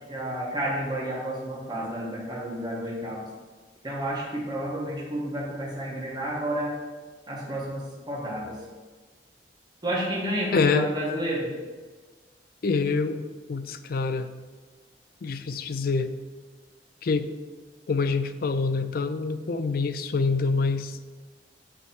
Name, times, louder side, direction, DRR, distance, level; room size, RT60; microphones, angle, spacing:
voice 1, 0.1-3.2 3.8-6.7 7.3-8.6 9.8-11.5, right 1 dB, 25° right, -6 dB, 1.4 m, -30 dB
voice 2, 10.5-10.9 12.6-14.3 15.2-16.1 17.0-17.3 17.9-21.0, left 4 dB, 55° left, 11 dB, 0.4 m, -26 dB
8.6 x 3.2 x 4.4 m, 1.4 s
head